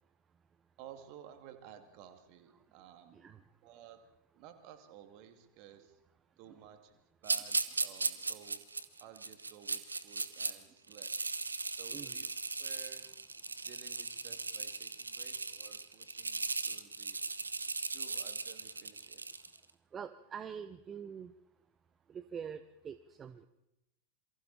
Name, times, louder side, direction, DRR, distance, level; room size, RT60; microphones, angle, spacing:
voice 1, 0.8-3.2 3.6-4.0 4.3-6.0 6.4-8.6 9.0-11.1 11.8-12.3 12.6-13.1 13.6-17.2 17.9-19.2, right 10 dB, 45° right, 7 dB, 2.5 m, -55 dB
voice 2, 3.1-3.4 6.5-6.6 11.9-12.1 19.9-21.3 22.1-23.5, right 7 dB, 20° right, 13 dB, 0.8 m, -45 dB
sound 1, 7.2-10.5 10.9-19.6, right 3 dB, 80° right, 1.1 m, -37 dB
27.5 x 23.5 x 4.4 m, 0.88 s
figure-of-eight pair, 90°, 0 cm